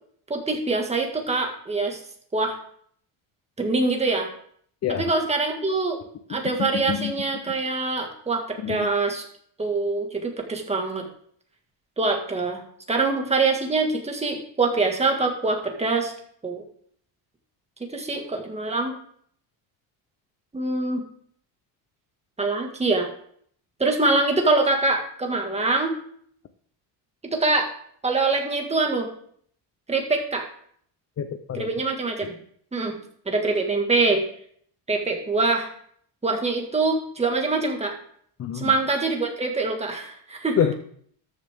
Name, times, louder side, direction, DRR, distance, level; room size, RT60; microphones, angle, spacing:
voice 1, 0.3-2.0 2.3-2.6 3.6-4.3 5.0-6.0 6.3-9.2 9.6-11.1 12.0-12.6 12.9-16.1 16.4-16.6 17.8-19.0 20.5-21.0 22.4-23.1 23.8-25.9 27.2-27.7 28.0-29.1 29.9-30.5 31.5-32.4 32.7-33.0 33.3-34.2 34.9-35.7 36.2-37.9 38.5-40.6, right 3 dB, 15° right, 2 dB, 1.9 m, -24 dB
voice 2, 6.3-7.1 8.6-8.9 31.2-31.7 32.2-32.3 38.4-38.7 40.6-40.7, left 9 dB, 35° left, 9 dB, 0.7 m, -27 dB
13.5 x 6.4 x 3.6 m, 0.62 s
cardioid pair, 130°, 42 cm